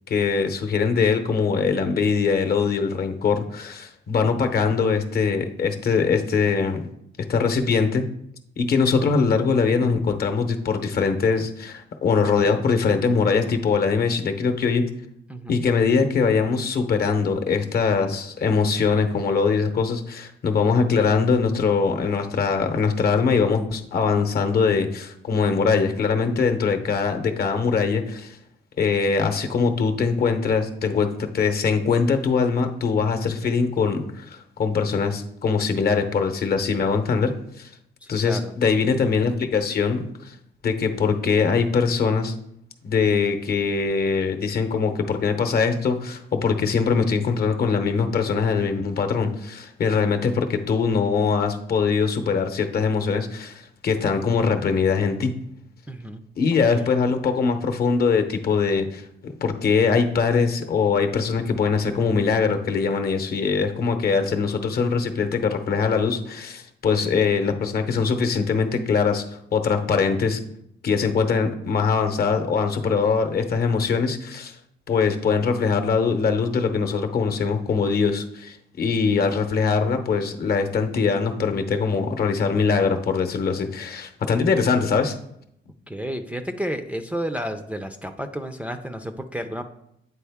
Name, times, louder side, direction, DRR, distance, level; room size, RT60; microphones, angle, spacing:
voice 1, 0.1-6.8 7.3-8.0 8.6-14.8 15.5-28.4 28.8-37.3 37.6-37.7 38.1-40.4 40.6-42.3 42.8-55.3 56.4-69.2 69.5-70.4 70.8-74.5 74.9-85.1, left 5 dB, 50° left, 7 dB, 0.8 m, -22 dB
voice 2, 15.3-15.6 38.0-38.5 55.9-56.2 56.7-56.9 85.9-89.6, equal, 5° right, 4 dB, 0.4 m, -31 dB
8.5 x 3.9 x 3.5 m, 0.75 s
cardioid pair, 90°, 20 cm